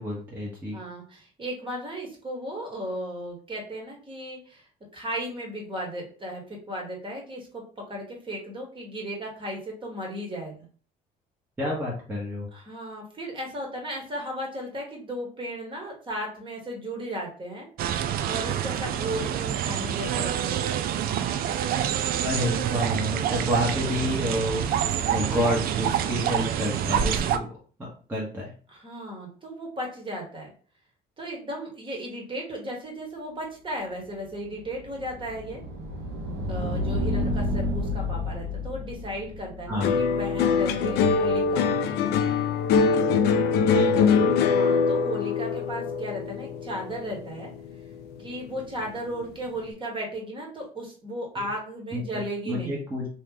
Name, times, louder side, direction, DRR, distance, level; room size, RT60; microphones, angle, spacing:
voice 1, 0.0-0.8 11.6-12.5 22.2-24.6 25.1-27.5 27.8-28.5 39.7-40.0 43.7-44.4 51.4-51.5 51.9-53.1, left 1 dB, 10° right, -5 dB, 1.1 m, -29 dB
voice 2, 0.7-4.7 4.9-7.6 7.9-10.5 12.5-17.7 18.2-20.8 28.7-30.5 31.2-35.6 36.5-41.6 44.5-47.5 48.2-52.8, equal, 30° right, 0 dB, 1.5 m, -35 dB
sound 1, 17.8-27.4, right 9 dB, 60° right, 0.4 m, -27 dB
sound 2, 34.3-41.1, left 1 dB, 80° right, 1.1 m, -31 dB
sound 3, 39.8-48.3 48.6-49.2, left 5 dB, 75° left, 0.5 m, -23 dB
3.0 x 2.7 x 3.8 m, 0.41 s
cardioid pair, 110°, 17 cm